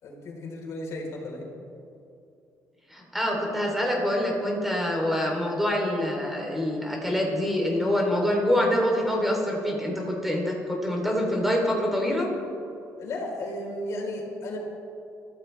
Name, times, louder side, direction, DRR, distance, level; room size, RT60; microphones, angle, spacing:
voice 1, 0.0-1.5 13.0-14.6, left 1 dB, 60° left, -1 dB, 4.3 m, -34 dB
voice 2, 2.9-12.3, left 1 dB, 5° right, -1 dB, 3.4 m, -25 dB
24.0 x 14.5 x 3.4 m, 2.7 s
cardioid pair, 145°, 6 cm